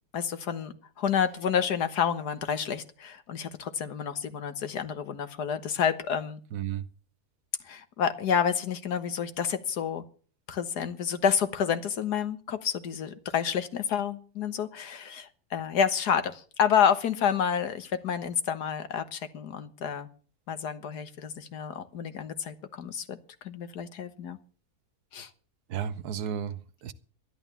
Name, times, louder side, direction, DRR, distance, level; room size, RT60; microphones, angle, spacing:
voice 1, 0.1-6.4 7.7-10.0 10.5-20.1 20.5-23.2 23.4-24.4 25.1-25.3, left 7 dB, 80° left, 1.8 m, -29 dB
voice 2, 6.5-6.8 25.7-26.9, right 8 dB, 75° right, 1.4 m, -33 dB
12.5 x 11.5 x 7.0 m
omnidirectional pair, 1.7 m